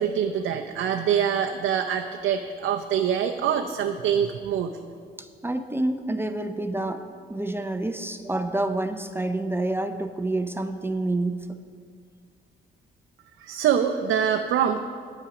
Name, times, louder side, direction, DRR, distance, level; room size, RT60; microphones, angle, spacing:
voice 1, 0.0-4.7 13.4-14.8, right 8 dB, 75° right, 4 dB, 0.6 m, -24 dB
voice 2, 5.2-7.0 7.3-11.6, right 2 dB, 10° right, 8 dB, 0.5 m, -28 dB
9.1 x 8.6 x 5.9 m, 2.1 s
cardioid pair, 90°, 20 cm